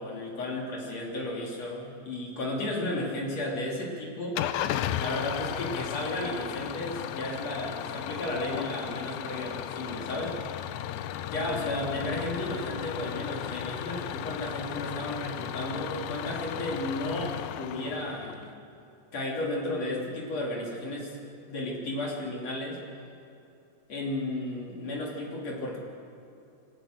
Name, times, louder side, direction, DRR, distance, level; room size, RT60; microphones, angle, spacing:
voice 1, 0.0-4.4 5.0-10.4 11.3-18.5 19.1-21.2 21.5-22.8 23.9-25.8, left 1 dB, 45° left, -2 dB, 3.9 m, -33 dB
Engine starting / Idling, 4.4-18.5, left 11 dB, 80° left, 2.4 m, -35 dB
25.0 x 17.5 x 6.5 m, 2.6 s
omnidirectional pair, 4.4 m